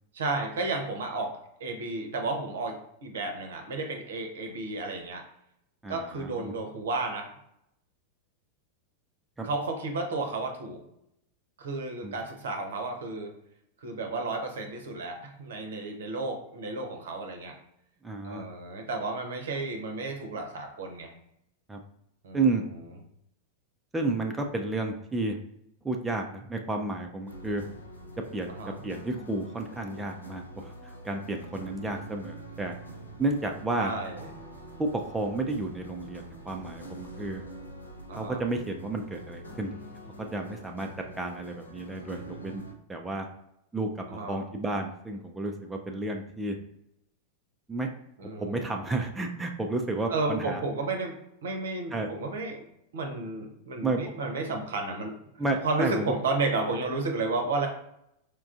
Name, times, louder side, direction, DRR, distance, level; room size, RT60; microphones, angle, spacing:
voice 1, 0.1-1.3 1.6-5.2 5.9-7.3 9.4-10.8 11.6-13.3 13.8-17.5 18.2-21.1 22.2-22.7 28.5-28.7 33.8-34.3 38.1-38.4 44.1-44.4 48.2-48.6 50.1-52.6 52.9-55.2 55.6-57.7, right 3 dB, 60° right, 4 dB, 0.7 m, -32 dB
voice 2, 5.8-6.5 9.4-9.5 12.0-12.1 18.0-18.4 21.7-21.8 22.3-22.6 23.9-25.4 25.8-27.6 28.3-28.5 28.8-32.8 33.2-33.9 34.8-37.4 38.1-39.7 40.2-40.9 41.2-42.6 42.9-43.3 43.7-46.6 47.7-47.9 48.4-50.6 51.9-52.1 53.8-54.0 55.4-56.1, right 2 dB, 10° right, 2 dB, 0.4 m, -31 dB
sound 1, 27.3-42.7, right 1 dB, 80° left, 0.6 m, -45 dB
4.4 x 2.4 x 2.4 m, 0.78 s
figure-of-eight pair, 90°, 0 cm